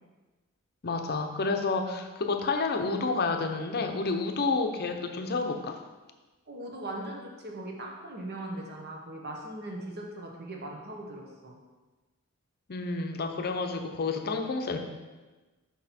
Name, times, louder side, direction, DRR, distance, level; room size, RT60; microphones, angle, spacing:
voice 1, 0.8-5.8 12.7-14.8, left 3 dB, 45° left, 5 dB, 0.7 m, -29 dB
voice 2, 6.5-11.6, right 1 dB, 50° right, 0 dB, 1.2 m, -39 dB
6.3 x 5.9 x 4.3 m, 1.2 s
head